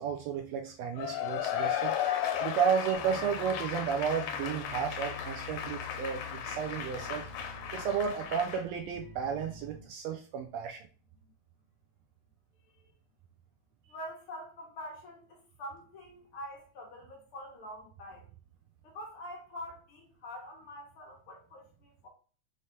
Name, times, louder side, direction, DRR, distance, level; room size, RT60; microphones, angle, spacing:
voice 1, 0.0-2.0 2.4-10.9, right 7 dB, 80° right, 3 dB, 1.6 m, -33 dB
Cheering / Applause / Crowd, 1.0-8.6, left 9 dB, 90° left, 2.0 m, -35 dB
sound 1, 2.9-9.8, left 3 dB, 60° right, 2.7 m, -48 dB
voice 2, 13.9-18.3 18.8-22.1, equal, 65° left, 0 dB, 1.5 m, -45 dB
5.1 x 3.2 x 2.8 m, 0.39 s
omnidirectional pair, 3.3 m